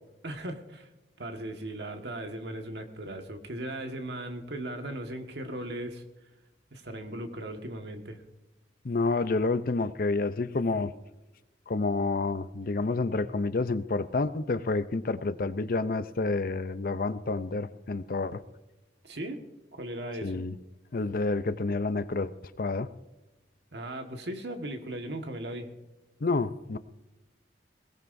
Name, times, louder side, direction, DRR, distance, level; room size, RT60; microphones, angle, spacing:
voice 1, 0.2-0.9 1.2-6.0 6.7-8.2 19.0-19.4 19.7-20.4 23.7-25.7, right 1 dB, 70° right, 5 dB, 1.6 m, -37 dB
voice 2, 8.8-10.9 11.7-18.4 20.2-20.5 20.9-22.3 22.6-22.9 26.2-26.8, left 3 dB, 55° left, 13 dB, 0.6 m, -29 dB
21.0 x 18.0 x 2.6 m, 1.0 s
head